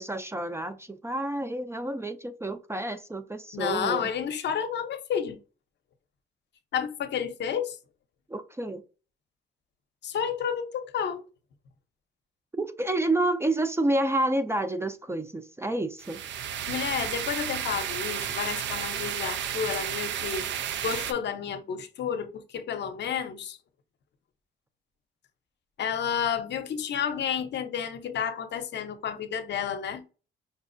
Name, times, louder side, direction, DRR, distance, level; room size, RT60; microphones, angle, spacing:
voice 1, 0.0-4.1 8.3-8.8 12.6-16.2, right 1 dB, 15° right, 0.4 m, -29 dB
voice 2, 3.5-5.4 6.7-7.8 10.0-11.3 16.7-23.6 25.8-30.0, left 8 dB, 60° left, 0.7 m, -31 dB
sound 1, 16.0-21.1, right 9 dB, 65° right, 0.4 m, -32 dB
5.4 x 2.0 x 2.5 m
cardioid pair, 90°, 20 cm